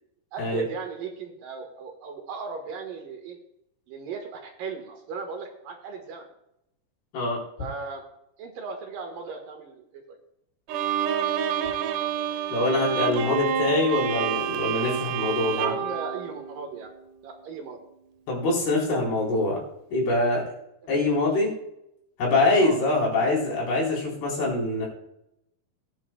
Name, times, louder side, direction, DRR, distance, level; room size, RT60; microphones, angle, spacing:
voice 1, 0.3-3.4 3.9-6.3 7.6-8.0 8.4-10.2 15.5-16.9 17.2-17.8 22.5-22.8, right 5 dB, 65° right, 3 dB, 2.9 m, -37 dB
Bowed string instrument, 10.7-17.0, right 8 dB, 85° right, 1.8 m, -28 dB
voice 2, 12.5-15.7 18.3-19.6 19.9-20.4 20.9-21.5 22.2-24.9, left 2 dB, 75° left, -3 dB, 5.9 m, -24 dB
20.0 x 9.9 x 2.3 m, 0.82 s
omnidirectional pair, 4.5 m